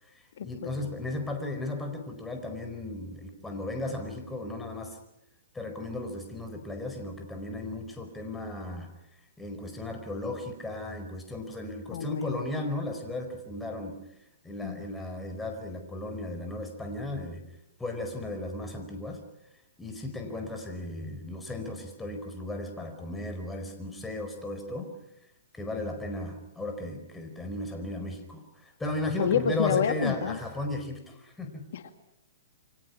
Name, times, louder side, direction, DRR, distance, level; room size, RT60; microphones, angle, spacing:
voice 1, 0.0-5.0 5.5-8.9 9.4-14.0 14.4-17.4 17.8-19.2 19.8-24.9 25.5-31.7, left 2 dB, 10° left, 4 dB, 4.7 m, -35 dB
voice 2, 11.9-12.4 14.6-14.8 29.2-30.4 31.7-31.9, left 7 dB, 65° left, 8 dB, 2.1 m, -28 dB
29.0 x 25.0 x 5.9 m, 0.87 s
hypercardioid pair, 125°, 0 cm